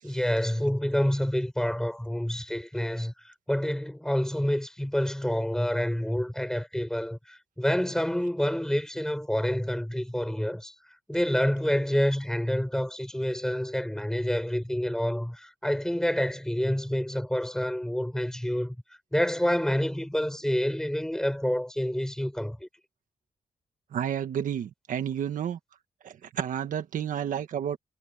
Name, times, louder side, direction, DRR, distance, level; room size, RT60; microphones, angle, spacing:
voice 1, 0.0-10.7 11.1-18.8 19.1-22.7, equal, 5° left, 6.5 m, -28 dB
voice 2, 23.9-25.6 26.0-27.8, right 9 dB, 85° right, 1.5 m, -31 dB
cardioid pair, 105°, 13 cm